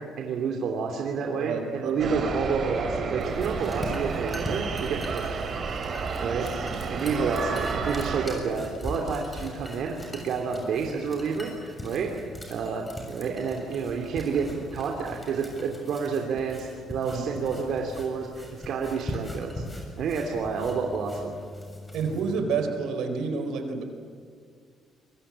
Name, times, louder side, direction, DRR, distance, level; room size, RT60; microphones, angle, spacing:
voice 1, 0.0-5.4 6.2-6.5 6.9-12.1 12.5-19.6 20.0-21.4, right 5 dB, 70° right, 2 dB, 2.9 m, -29 dB
voice 2, 1.4-2.3 6.8-7.1 17.0-17.3 21.9-23.8, right 5 dB, 85° right, 6 dB, 4.3 m, -30 dB
sound 1, 2.0-8.3, right 5 dB, 45° right, 3.5 m, -31 dB
sound 2, 3.2-22.4, left 1 dB, 15° left, 7.1 m, -41 dB
26.0 x 23.0 x 8.8 m, 2.1 s
cardioid pair, 125°, 0 cm